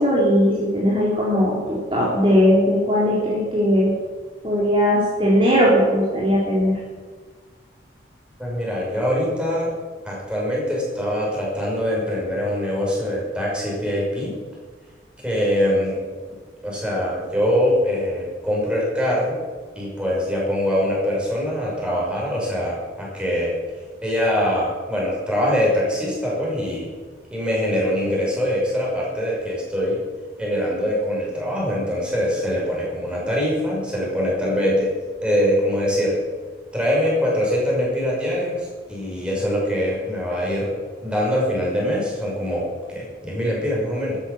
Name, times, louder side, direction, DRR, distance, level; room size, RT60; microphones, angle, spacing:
voice 1, 0.0-3.9 4.4-6.7, equal, 25° right, -6 dB, 3.8 m, -18 dB
voice 2, 8.4-9.7 10.0-14.4 15.2-16.0 16.6-19.4 19.7-23.5 24.0-26.9 27.3-30.0 30.4-34.9 35.2-36.2 36.7-40.7 41.0-44.2, equal, 5° right, -5 dB, 6.3 m, -23 dB
14.5 x 13.0 x 7.2 m, 1.5 s
head